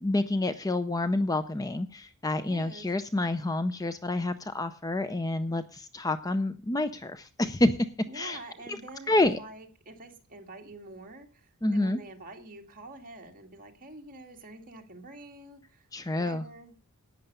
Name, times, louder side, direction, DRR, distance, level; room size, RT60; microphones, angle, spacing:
voice 1, 0.0-7.8 8.1-8.4 9.1-9.4 11.6-12.0 15.9-16.4, left 2 dB, 15° left, 12 dB, 0.5 m, -28 dB
voice 2, 2.4-2.9 8.1-15.9 16.2-16.7, right 2 dB, 40° right, 2 dB, 2.2 m, -46 dB
11.0 x 9.2 x 6.7 m, 0.38 s
head